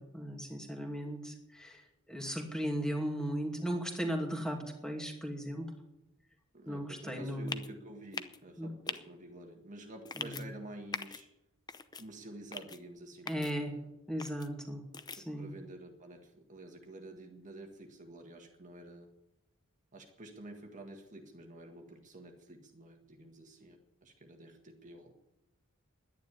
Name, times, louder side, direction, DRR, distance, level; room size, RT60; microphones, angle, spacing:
voice 1, 0.0-5.7 6.7-7.5 8.6-8.7 10.2-10.4 13.3-13.7 14.1-14.8 15.1-15.5, equal, 5° left, 2 dB, 2.5 m, -37 dB
voice 2, 6.5-11.3 11.9-13.9 15.1-19.1 19.9-25.1, right 1 dB, 35° right, 3 dB, 1.7 m, -50 dB
sound 1, 7.5-7.7 8.1-8.4 8.9-9.0 10.1-10.4 10.9-11.2 11.7-12.0 12.5-12.8 13.3-13.5 14.2-14.5 14.9-15.2, left 4 dB, 20° left, 0.7 m, -40 dB
11.5 x 10.5 x 9.7 m, 0.90 s
head